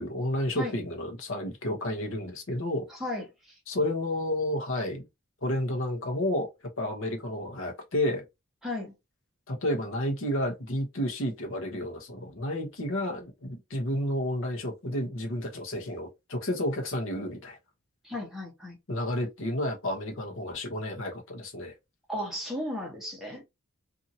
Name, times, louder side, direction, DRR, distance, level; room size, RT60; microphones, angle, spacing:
voice 1, 0.0-2.9 3.7-5.0 5.4-6.5 6.8-8.2 9.5-17.6 18.9-21.7, left 1 dB, 60° left, 0.9 m, -31 dB
voice 2, 2.9-3.5 8.6-8.9 18.0-18.8 22.1-23.4, left 1 dB, ahead, 1.0 m, -35 dB
2.7 x 2.7 x 2.7 m
head